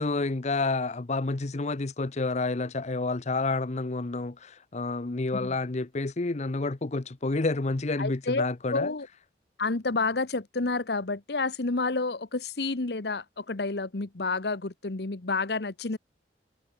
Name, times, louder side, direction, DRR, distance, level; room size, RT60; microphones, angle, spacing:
voice 1, 0.0-8.9, left 3 dB, 40° left, 0.8 m, -29 dB
voice 2, 8.0-9.1 9.6-16.0, left 3 dB, 65° left, 1.1 m, -30 dB
head